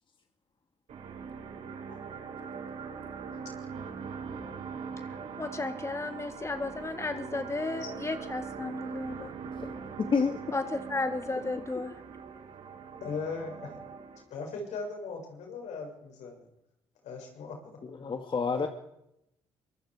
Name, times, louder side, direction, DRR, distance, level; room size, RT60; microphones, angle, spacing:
sound 1, 0.9-14.2, right 5 dB, 65° right, 6.8 m, -41 dB
voice 1, 5.0-9.3 10.5-11.9, left 3 dB, 20° left, 8 dB, 1.7 m, -34 dB
voice 2, 10.0-10.4 17.8-18.7, left 5 dB, 40° left, 5 dB, 2.2 m, -29 dB
voice 3, 13.0-13.7 14.3-16.4 17.0-17.6, left 4 dB, 75° left, 2 dB, 7.1 m, -38 dB
24.5 x 22.5 x 5.0 m, 0.83 s
supercardioid pair, 65°, 12 cm